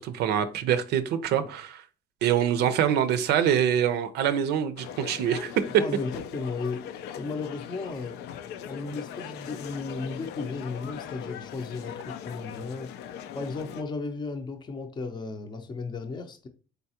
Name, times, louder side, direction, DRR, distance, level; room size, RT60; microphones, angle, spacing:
voice 1, 0.0-1.8 2.2-5.7, right 9 dB, 75° right, 0.5 m, -25 dB
sound 1, 4.8-13.8, left 9 dB, 75° left, 0.4 m, -40 dB
voice 2, 5.8-6.9 7.2-8.2 8.6-12.9 13.3-16.5, left 4 dB, 25° left, 0.6 m, -35 dB
4.0 x 3.4 x 2.8 m
cardioid pair, 110°, 17 cm